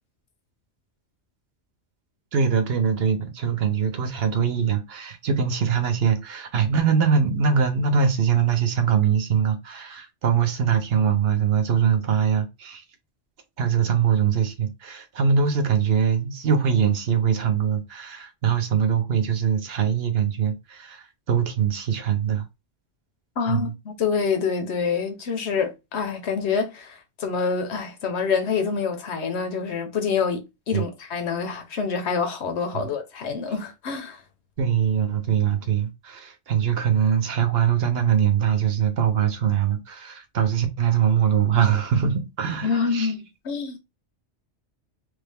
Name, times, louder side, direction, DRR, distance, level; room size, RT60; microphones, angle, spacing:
voice 1, 2.3-12.8 13.6-22.5 23.5-23.7 30.7-30.8 32.7-32.9 34.6-43.1, right 7 dB, 60° right, 0.9 m, -22 dB
voice 2, 23.4-34.2 42.6-43.8, left 5 dB, 70° left, 1.0 m, -26 dB
3.3 x 2.3 x 3.4 m
omnidirectional pair, 1.2 m